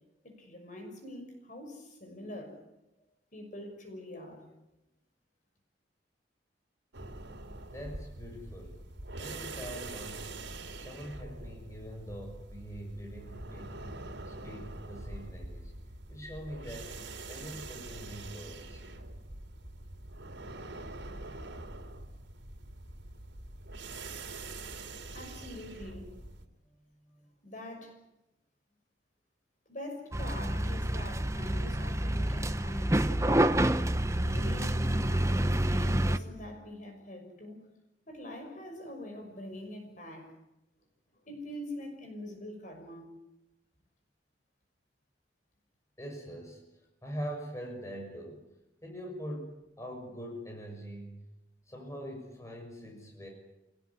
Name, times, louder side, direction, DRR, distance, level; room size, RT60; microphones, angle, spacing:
voice 1, 0.2-2.6 3.3-4.4 24.8-26.1 27.4-28.0 29.7-33.7 34.1-37.6 38.1-40.3 41.1-43.1, left 1 dB, 45° left, 4 dB, 6.2 m, -44 dB
sound 1, 6.9-26.5, right 2 dB, 85° right, 3.2 m, -44 dB
voice 2, 7.7-8.8 9.2-13.8 14.3-15.7 16.1-18.8 27.1-27.3 46.0-48.5 48.8-51.2 51.7-53.3, equal, 15° left, 1 dB, 6.5 m, -43 dB
sound 2, 30.1-36.2, right 1 dB, 15° right, 0.9 m, -28 dB
27.5 x 18.5 x 9.9 m, 0.93 s
head